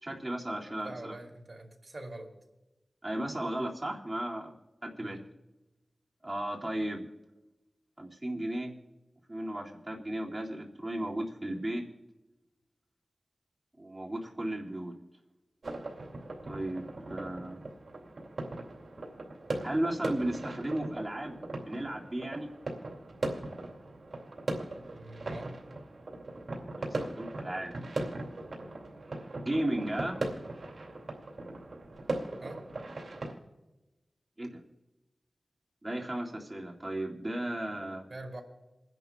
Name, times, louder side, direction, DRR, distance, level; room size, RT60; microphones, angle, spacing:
voice 1, 0.0-1.1 3.0-4.5 4.8-5.2 6.2-7.1 8.0-8.7 9.3-11.8 13.8-14.9 16.5-17.6 19.6-21.4 21.6-22.5 26.8-27.7 29.4-30.2 34.4-34.6 35.8-38.1, right 1 dB, 25° right, -2 dB, 2.3 m, -35 dB
voice 2, 0.8-2.3 5.0-5.2 24.9-25.6 32.4-32.6 38.1-38.4, right 2 dB, 55° right, 2 dB, 2.6 m, -44 dB
sound 1, 15.6-33.3, right 2 dB, 70° right, 2.4 m, -39 dB
28.5 x 11.0 x 2.3 m, 1.0 s
wide cardioid pair, 70°, 0 cm